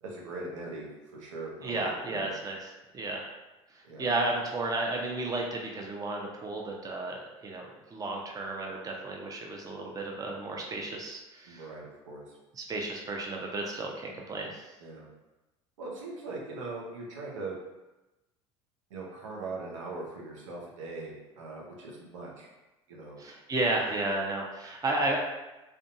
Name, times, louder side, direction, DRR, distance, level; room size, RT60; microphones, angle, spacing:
voice 1, 0.0-2.3 3.8-4.1 11.5-12.4 14.8-15.1 15.8-17.6 18.9-22.5 22.9-23.2, right 3 dB, 85° right, -2 dB, 0.6 m, -40 dB
voice 2, 1.6-2.6 2.9-3.3 3.7-7.6 7.9-11.6 12.6-14.7 23.2-25.2, right 2 dB, 25° right, 0 dB, 0.5 m, -33 dB
2.5 x 2.2 x 2.6 m, 1.0 s
hypercardioid pair, 75°, 16 cm